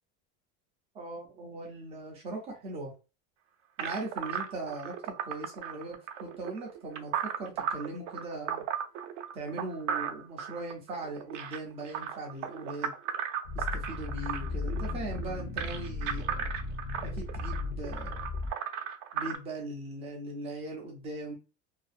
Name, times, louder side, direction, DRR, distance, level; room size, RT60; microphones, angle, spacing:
voice 1, 0.9-2.9 3.8-8.7 9.3-12.9 13.5-16.5 17.0-18.3 19.1-21.4, right 2 dB, 20° right, 0 dB, 0.3 m, -39 dB
sound 1, 3.8-19.4, right 8 dB, 80° right, 0.5 m, -36 dB
sound 2, 13.4-18.5, left 3 dB, 45° left, 0.5 m, -36 dB
2.5 x 2.0 x 2.4 m, 0.30 s
cardioid pair, 170°, 36 cm